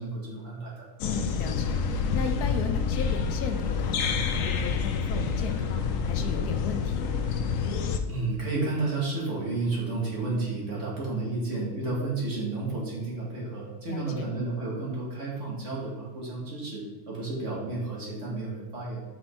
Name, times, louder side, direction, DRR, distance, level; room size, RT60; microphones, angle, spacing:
voice 1, 0.0-0.9 8.1-19.0, right 3 dB, 50° right, -4 dB, 2.1 m, -31 dB
voice 2, 1.0-7.2 13.9-14.3, left 5 dB, 85° left, 6 dB, 1.3 m, -36 dB
sound 1, 1.0-8.0, left 5 dB, 65° left, 0.9 m, -28 dB
5.7 x 5.2 x 4.4 m, 1.1 s
omnidirectional pair, 1.6 m